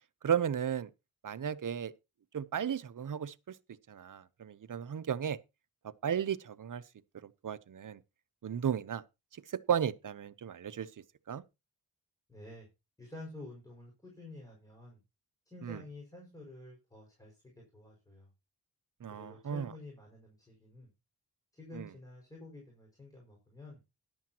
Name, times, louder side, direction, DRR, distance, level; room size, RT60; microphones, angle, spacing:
voice 1, 0.2-0.9 1.2-1.9 2.3-3.5 3.9-5.4 6.0-6.8 7.4-8.0 8.4-9.0 9.7-10.9 11.3-11.4 15.6-15.8 19.0-19.7 21.7-21.9, right 8 dB, 55° right, 0.8 m, -34 dB
voice 2, 12.3-12.7 13.0-15.0 15.5-18.3 19.1-20.9 21.5-23.8, left 2 dB, 10° left, 5.7 m, -50 dB
13.5 x 11.5 x 2.9 m
wide cardioid pair, 110°, 38 cm